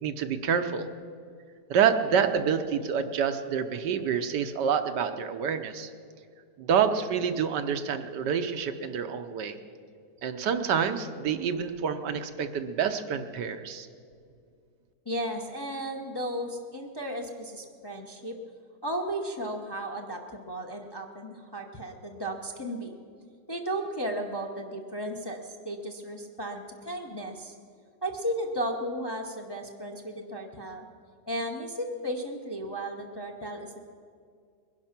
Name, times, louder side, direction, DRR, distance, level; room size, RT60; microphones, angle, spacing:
voice 1, 0.0-0.9 1.7-5.9 6.6-9.6 10.2-13.9, right 7 dB, 75° right, 8 dB, 1.4 m, -27 dB
voice 2, 15.0-18.4 18.8-23.0 23.5-27.5 28.0-30.9 31.3-33.8, right 1 dB, 20° left, 1 dB, 0.8 m, -34 dB
21.0 x 11.0 x 5.9 m, 2.3 s
omnidirectional pair, 1.9 m